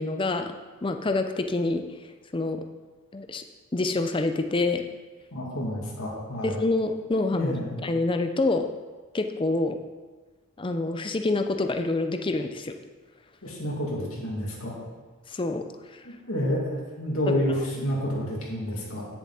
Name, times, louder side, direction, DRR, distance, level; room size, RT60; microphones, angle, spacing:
voice 1, 0.0-1.8 2.3-2.6 3.1-3.4 3.7-4.8 6.4-8.7 9.1-9.8 10.6-12.7 15.3-15.6 15.9-16.0 17.3-17.4, left 2 dB, 25° left, 7 dB, 0.5 m, -27 dB
voice 2, 5.3-6.6 7.3-7.8 13.4-14.8 16.0-19.1, equal, 75° left, -4 dB, 2.5 m, -29 dB
9.9 x 7.1 x 4.1 m, 1.3 s
head